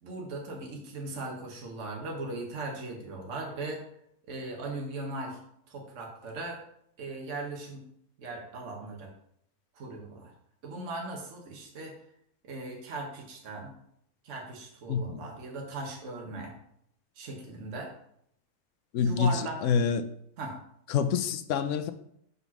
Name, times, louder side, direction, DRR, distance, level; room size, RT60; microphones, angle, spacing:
voice 1, 0.0-3.8 4.3-5.4 5.7-6.6 7.0-7.9 8.2-9.1 9.7-10.3 10.6-11.9 12.4-13.7 14.2-16.5 17.1-17.9 19.0-19.6 20.4-20.6, right 2 dB, 55° right, 1.4 m, -38 dB
voice 2, 14.9-15.3 18.9-20.0 20.9-21.9, left 6 dB, 65° left, 0.8 m, -27 dB
5.2 x 4.1 x 5.9 m
omnidirectional pair, 1.6 m